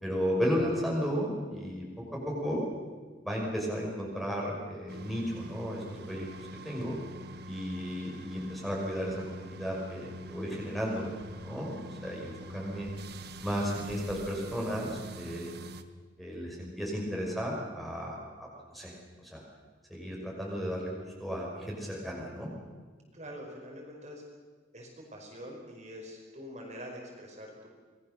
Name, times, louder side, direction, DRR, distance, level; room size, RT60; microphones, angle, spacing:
voice 1, 0.0-1.9 2.1-2.7 3.2-6.9 7.5-11.1 11.4-12.9 13.4-15.5 16.2-18.3 18.7-18.9 19.2-19.4 19.9-22.5, equal, ahead, -2 dB, 5.6 m, -34 dB
sound 1, 4.9-15.8, right 1 dB, 55° right, 1.3 m, -45 dB
voice 2, 23.1-24.2 24.7-27.7, equal, 35° right, 0 dB, 5.1 m, -45 dB
26.5 x 21.0 x 6.8 m, 1.4 s
head